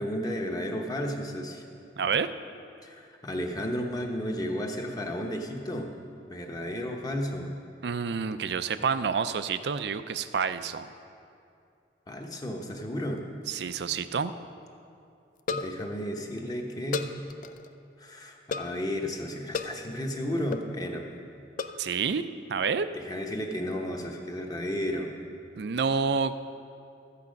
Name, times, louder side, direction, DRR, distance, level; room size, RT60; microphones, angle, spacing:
voice 1, 0.0-1.6 2.8-5.9 6.3-7.5 12.1-13.2 15.5-17.0 18.0-21.1 22.9-25.1, equal, 20° left, 2 dB, 1.0 m, -33 dB
voice 2, 2.0-2.3 7.8-10.9 13.5-14.3 21.8-22.2 22.5-22.9 25.6-26.3, right 6 dB, 65° right, 12 dB, 0.4 m, -28 dB
sound 1, 13.2-13.7 14.0-14.1 14.3-14.4 15.4-15.9 16.9-17.7 18.5-18.8 19.5-19.8 20.5-20.7 21.6-21.9, left 4 dB, 45° left, 0.4 m, -34 dB
13.5 x 8.4 x 5.2 m, 2.5 s
head